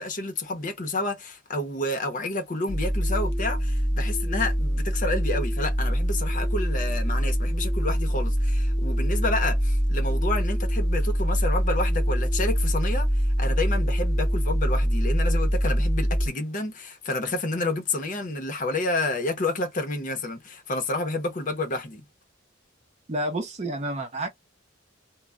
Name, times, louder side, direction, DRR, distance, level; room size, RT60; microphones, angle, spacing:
voice 1, 0.0-22.0, left 2 dB, 40° left, 0.6 m, -30 dB
sound 1, 2.7-16.3, equal, ahead, 1.0 m, -24 dB
voice 2, 23.1-24.3, right 1 dB, 30° right, 0.6 m, -29 dB
2.1 x 2.0 x 3.5 m
head